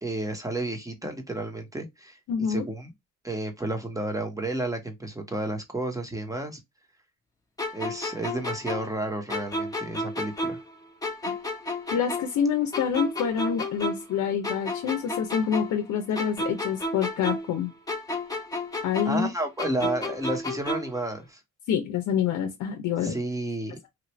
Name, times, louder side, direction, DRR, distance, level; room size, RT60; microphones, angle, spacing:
voice 1, 0.0-2.2 2.5-2.9 3.2-6.6 7.7-10.6 19.0-21.4 23.0-23.9, right 1 dB, 10° right, 1.1 m, -31 dB
voice 2, 2.3-2.6 11.3-11.4 11.9-17.7 18.8-19.3 21.7-23.1, left 8 dB, 75° left, 0.7 m, -27 dB
sound 1, 7.6-10.7 11.0-14.2 14.4-17.6 17.9-21.0, left 1 dB, 10° left, 1.0 m, -32 dB
3.1 x 2.5 x 3.1 m
cardioid pair, 90°, 30 cm